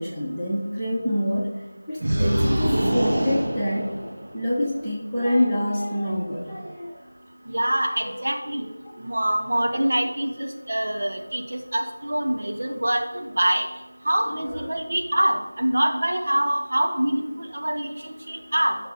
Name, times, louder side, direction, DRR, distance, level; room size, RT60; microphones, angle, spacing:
voice 1, 0.0-1.5 1.9-4.1 4.3-7.0 14.4-14.5, equal, ahead, -15 dB, 1.8 m, -26 dB
sound 1, 2.0-4.5, right 1 dB, 40° right, 1.8 m, -24 dB
voice 2, 7.5-8.7 9.0-13.7 14.0-18.8, right 1 dB, 55° right, 2 dB, 1.6 m, -25 dB
15.5 x 6.6 x 4.0 m, 1.2 s
figure-of-eight pair, 170°, 0 cm